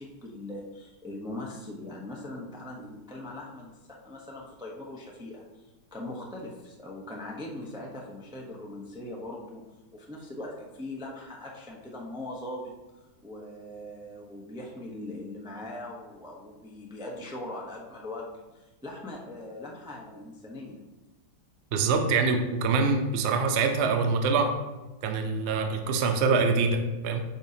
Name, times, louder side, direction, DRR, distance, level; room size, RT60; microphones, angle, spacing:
voice 1, 0.0-5.6 5.9-12.7 13.2-20.9, left 1 dB, 5° right, -2 dB, 0.4 m, -40 dB
voice 2, 21.7-24.5 25.0-27.2, right 4 dB, 70° right, 5 dB, 0.6 m, -25 dB
8.9 x 5.4 x 2.8 m, 1.1 s
omnidirectional pair, 2.1 m